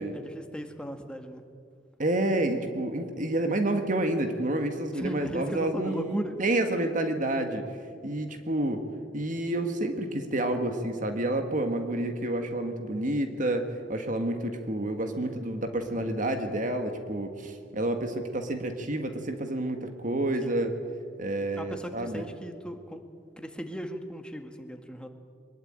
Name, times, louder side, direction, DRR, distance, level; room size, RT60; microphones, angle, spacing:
voice 1, 0.0-1.4 4.9-6.4 20.4-20.6 21.6-23.0 23.4-25.1, equal, 5° left, 5 dB, 1.9 m, -37 dB
voice 2, 2.0-7.7 8.0-8.9 9.1-20.7 21.2-22.3, right 1 dB, 45° right, 6 dB, 1.8 m, -29 dB
23.0 x 21.5 x 9.0 m, 2.2 s
head